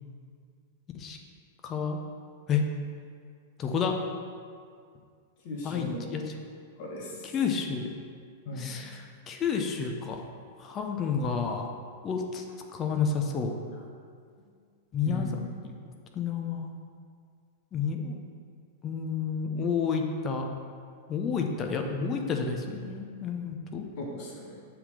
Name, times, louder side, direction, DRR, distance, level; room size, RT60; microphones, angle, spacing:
voice 1, 1.6-2.0 2.5-2.7 3.6-4.0 5.6-6.2 7.3-7.9 8.6-9.0 9.3-10.2 10.6-11.7 12.0-12.4 12.7-13.5 14.9-15.3 16.1-16.7 17.7-18.2 18.8-20.5 21.1-23.9, left 6 dB, 30° left, 3 dB, 0.8 m, -30 dB
voice 2, 5.4-6.1 6.8-7.3 8.4-8.8 13.7-13.8 14.4-14.5 15.0-15.3 24.0-24.6, left 2 dB, 50° left, -2 dB, 1.2 m, -37 dB
7.1 x 3.8 x 6.5 m, 2.1 s
figure-of-eight pair, 100°, 0 cm